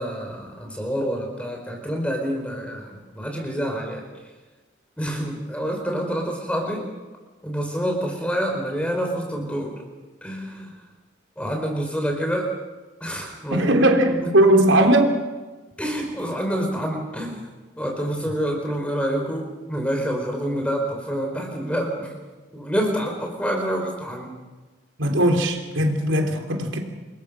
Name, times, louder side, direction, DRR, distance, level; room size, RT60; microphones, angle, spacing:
voice 1, 0.0-4.0 5.0-6.9 7.4-9.7 10.2-10.7 11.4-12.5 13.0-13.7 14.1-14.5 15.8-17.5 17.8-22.1 22.5-24.3, equal, 5° left, 2 dB, 4.8 m, -27 dB
voice 2, 13.5-15.1 25.0-26.8, right 1 dB, 90° right, 3 dB, 3.6 m, -18 dB
28.0 x 22.0 x 6.4 m, 1.3 s
head